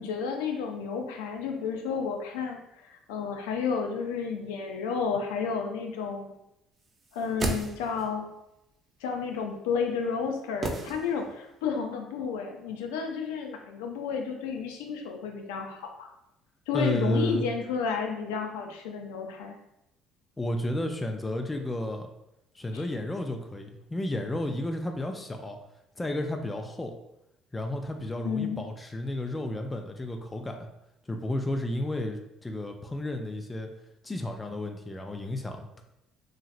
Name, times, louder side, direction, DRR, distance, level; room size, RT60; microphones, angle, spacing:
voice 1, 0.0-6.3 7.1-8.3 9.0-16.1 16.7-19.6 22.7-22.8 28.2-28.6, left 5 dB, 90° left, 3 dB, 0.4 m, -31 dB
sound 1, 7.0-8.2 10.6-11.5 11.8-11.9, right 3 dB, 35° right, 0.5 m, -34 dB
voice 2, 16.7-17.4 20.4-22.1 22.5-25.6 26.0-26.9 27.5-30.7 31.1-33.7 34.0-35.8, left 1 dB, 15° left, 4 dB, 0.4 m, -32 dB
2.9 x 2.7 x 2.5 m, 0.86 s
supercardioid pair, 85°, 0 cm